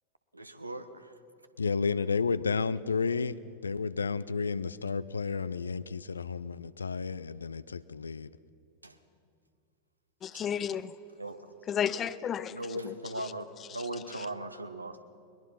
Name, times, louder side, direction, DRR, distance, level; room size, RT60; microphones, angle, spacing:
voice 1, 0.3-1.1 8.8-9.0 11.2-11.5 12.5-13.5 13.7-15.0, right 1 dB, 85° right, 10 dB, 1.1 m, -38 dB
voice 2, 1.6-3.4 3.6-8.3, left 5 dB, 75° left, 16 dB, 0.5 m, -31 dB
voice 3, 10.2-10.9 11.7-13.3 13.7-13.8 14.1-14.3, left 8 dB, 25° left, 16 dB, 0.7 m, -33 dB
21.5 x 21.0 x 5.7 m, 2.5 s
figure-of-eight pair, 90°, 0 cm